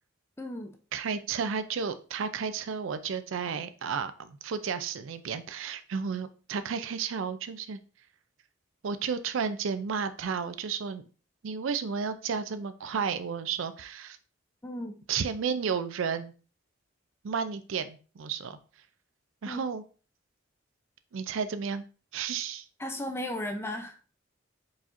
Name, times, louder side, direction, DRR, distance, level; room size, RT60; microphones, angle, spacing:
voice 1, 0.4-0.8 14.6-15.0 19.5-19.6 22.8-24.0, left 1 dB, 10° left, 4 dB, 0.4 m, -35 dB
voice 2, 0.9-7.8 8.8-11.0 11.4-14.2 15.1-16.3 17.2-18.6 19.4-19.8 21.1-21.8 22.1-22.6, right 6 dB, 80° right, 11 dB, 0.4 m, -32 dB
4.7 x 4.2 x 2.5 m, 0.36 s
head